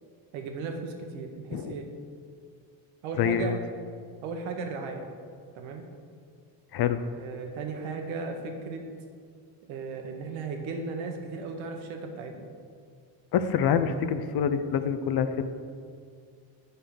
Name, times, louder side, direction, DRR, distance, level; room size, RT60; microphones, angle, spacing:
voice 1, 0.3-1.9 3.0-3.6 4.2-5.0 5.5-5.8 7.1-8.8 9.7-12.5, right 4 dB, 80° right, 4 dB, 1.3 m, -36 dB
voice 2, 3.2-3.6 6.7-7.0 13.3-15.4, left 7 dB, 55° left, 11 dB, 0.7 m, -26 dB
8.1 x 5.6 x 5.9 m, 2.1 s
cardioid pair, 95°, 46 cm